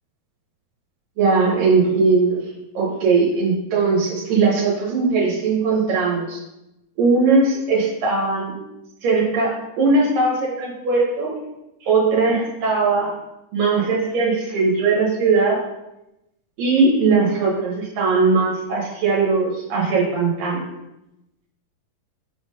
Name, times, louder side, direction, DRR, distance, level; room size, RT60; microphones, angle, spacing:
voice 1, 1.2-2.4 2.7-6.4 7.0-8.5 9.0-11.3 11.8-13.1 13.5-15.6 16.6-20.7, right 4 dB, 75° right, -4 dB, 2.8 m, -19 dB
5.7 x 3.8 x 5.2 m, 0.91 s
omnidirectional pair, 4.0 m